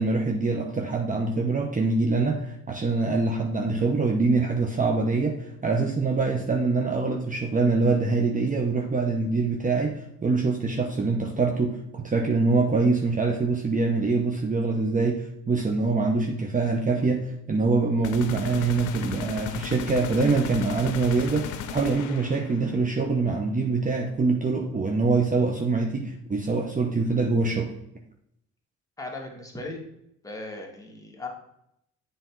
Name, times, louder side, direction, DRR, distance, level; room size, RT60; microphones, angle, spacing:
voice 1, 0.0-27.7, right 3 dB, 25° right, 2 dB, 0.8 m, -24 dB
sound 1, 18.0-22.8, left 8 dB, 80° left, 0.6 m, -35 dB
voice 2, 29.0-29.8 30.2-31.3, left 2 dB, 10° left, 0 dB, 1.7 m, -37 dB
7.7 x 3.4 x 4.5 m, 0.78 s
supercardioid pair, 70°, 31 cm